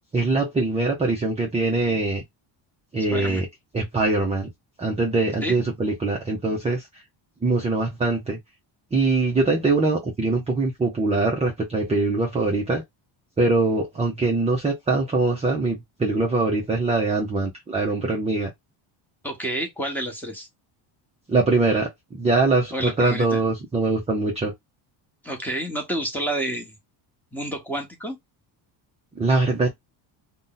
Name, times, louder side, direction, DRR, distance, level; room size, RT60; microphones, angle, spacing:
voice 1, 0.1-2.2 2.9-3.5 3.7-4.5 4.8-6.8 7.4-8.4 8.9-12.8 13.4-18.5 21.3-21.9 22.2-24.5 29.2-29.7, right 3 dB, 15° right, 0.4 m, -22 dB
voice 2, 3.1-3.4 5.4-5.6 19.2-20.5 22.7-23.4 25.2-26.7 27.3-28.2, right 1 dB, 5° left, 0.9 m, -29 dB
2.6 x 2.2 x 3.7 m
cardioid pair, 130°, 50 cm